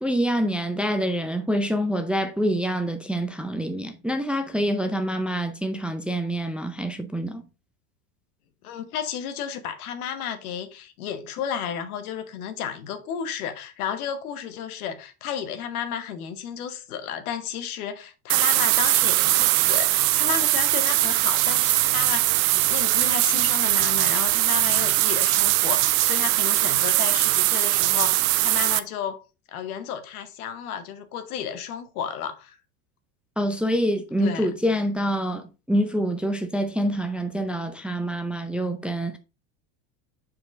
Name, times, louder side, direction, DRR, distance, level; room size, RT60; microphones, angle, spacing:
voice 1, 0.0-7.4 33.4-39.2, equal, 5° right, 0.4 m, -26 dB
voice 2, 8.6-29.2 29.5-32.6 34.2-34.5, left 8 dB, 90° left, 1.2 m, -32 dB
sound 1, 18.3-28.8, right 18 dB, 70° right, 0.6 m, -21 dB
6.0 x 4.8 x 3.6 m
supercardioid pair, 115°, 43 cm